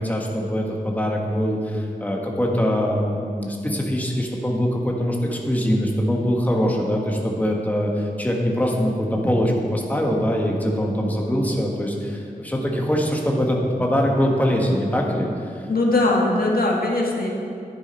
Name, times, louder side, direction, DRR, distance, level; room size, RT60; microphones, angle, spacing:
voice 1, 0.0-15.3, equal, 10° left, -1 dB, 1.5 m, -23 dB
voice 2, 15.7-17.3, left 2 dB, 80° left, -1 dB, 1.7 m, -20 dB
11.0 x 9.4 x 4.4 m, 2.5 s
wide cardioid pair, 75°, 15 cm